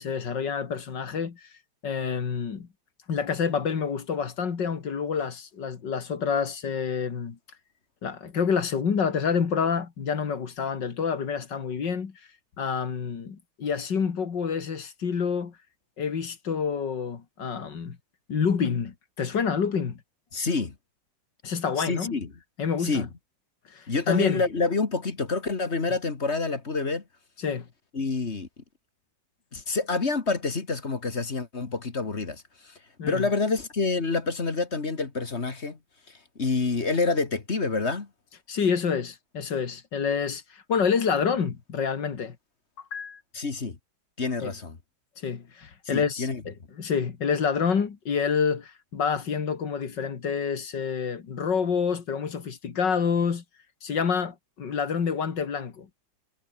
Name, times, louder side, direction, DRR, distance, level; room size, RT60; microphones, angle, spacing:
voice 1, 0.0-1.5 1.8-2.7 3.1-7.4 8.0-12.2 12.6-15.5 16.0-18.0 18.3-20.0 21.4-22.2 22.6-23.1 23.7-24.4 27.4-27.7 33.0-33.3 38.5-42.4 42.9-43.2 44.4-44.5 45.2-53.4 53.8-55.9, left 6 dB, 70° left, 2.8 m, -28 dB
voice 2, 20.3-20.8 21.8-22.3 22.8-23.1 23.9-27.0 27.9-28.5 29.5-32.7 33.1-35.8 36.4-38.1 43.3-43.8 44.2-44.8 45.9-46.4, left 3 dB, 35° left, 2.1 m, -27 dB
omnidirectional pair, 2.0 m